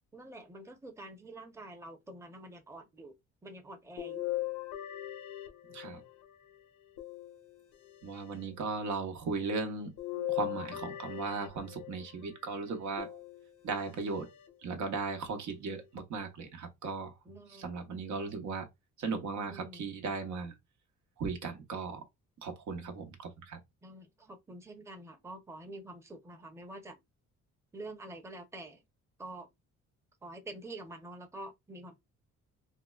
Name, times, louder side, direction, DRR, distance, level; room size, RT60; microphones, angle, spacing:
voice 1, 0.1-3.2 3.4-4.2 17.3-17.8 19.5-19.9 22.8-22.9 23.8-27.0 27.7-28.8 29.2-29.5 30.2-31.9, right 1 dB, 10° right, 0.7 m, -47 dB
sound 1, 4.0-6.2 7.0-8.0 10.0-12.0 13.0-13.8 14.5-14.6 16.0-16.1, left 15 dB, 85° left, 0.8 m, -39 dB
voice 2, 5.7-6.0 8.0-9.9 10.3-13.2 13.6-14.3 14.6-17.1 17.5-18.7 19.0-20.6 21.2-22.1 22.4-23.6, right 4 dB, 70° right, 0.9 m, -37 dB
3.6 x 2.1 x 2.2 m
cardioid pair, 90°, 30 cm